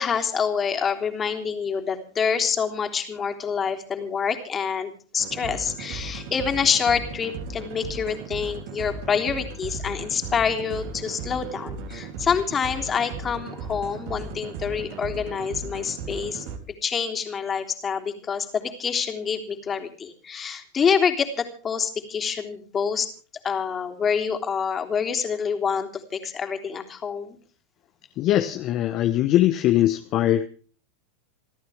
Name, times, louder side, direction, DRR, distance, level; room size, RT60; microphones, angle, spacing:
voice 1, 0.0-16.5 16.8-23.1 23.4-27.4, left 6 dB, 25° left, 4 dB, 3.4 m, -26 dB
sound 1, 5.2-16.6, right 3 dB, 60° right, 3.3 m, -36 dB
voice 2, 28.2-30.5, left 13 dB, 45° left, 7 dB, 1.2 m, -21 dB
28.0 x 13.0 x 3.6 m, 0.41 s
hypercardioid pair, 95°, 0 cm